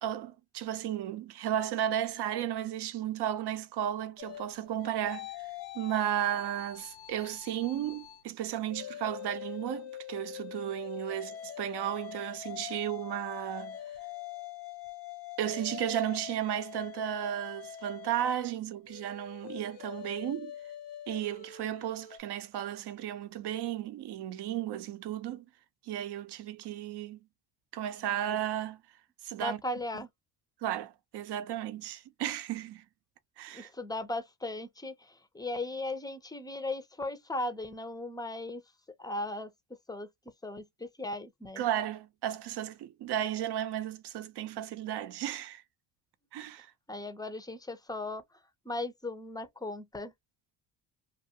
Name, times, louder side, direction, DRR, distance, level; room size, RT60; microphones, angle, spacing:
voice 1, 0.0-5.3 5.7-13.8 15.4-20.5 21.1-25.5 25.8-27.2 27.7-28.8 29.2-29.6 30.6-32.8 33.4-33.7 41.6-45.6 46.3-46.7, right 11 dB, 55° right, 0.7 m, -34 dB
sound 1, 4.2-8.2 8.6-22.2, left 11 dB, 85° left, 0.9 m, -44 dB
voice 2, 29.4-30.1 33.5-38.6 39.0-39.5 39.9-40.1 40.4-41.7 46.9-50.1, left 2 dB, 10° left, 0.5 m, -37 dB
2.3 x 2.3 x 2.7 m
supercardioid pair, 65°, 49 cm